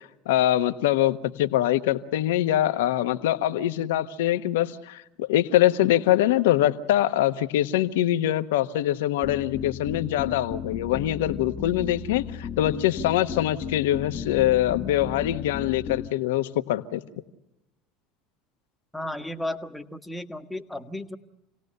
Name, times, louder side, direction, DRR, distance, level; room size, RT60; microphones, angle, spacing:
voice 1, 0.3-17.0, left 13 dB, 75° left, 10 dB, 1.2 m, -23 dB
sound 1, 9.2-16.1, left 7 dB, 40° left, 1.3 m, -35 dB
voice 2, 18.9-21.2, left 1 dB, 5° left, 6 dB, 1.6 m, -34 dB
28.5 x 18.0 x 6.7 m, 0.90 s
hypercardioid pair, 85°, 0 cm